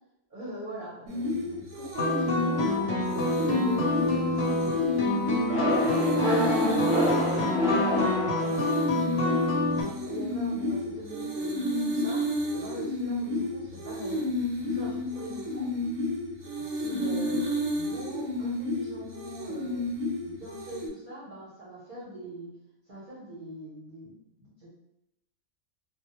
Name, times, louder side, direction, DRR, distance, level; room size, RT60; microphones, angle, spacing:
voice 1, 0.3-5.3 5.7-8.6 9.1-14.4 14.6-15.7 16.6-17.5 17.7-19.9 20.2-22.5 22.9-24.7, equal, 50° right, -7 dB, 0.7 m, -42 dB
sound 1, 1.1-20.9, left 1 dB, 85° right, 1.0 m, -31 dB
sound 2, 1.9-9.8, left 2 dB, 65° left, 0.8 m, -28 dB
sound 3, 5.5-9.0, equal, 5° right, 0.8 m, -27 dB
2.2 x 2.0 x 2.8 m, 0.84 s
omnidirectional pair, 1.3 m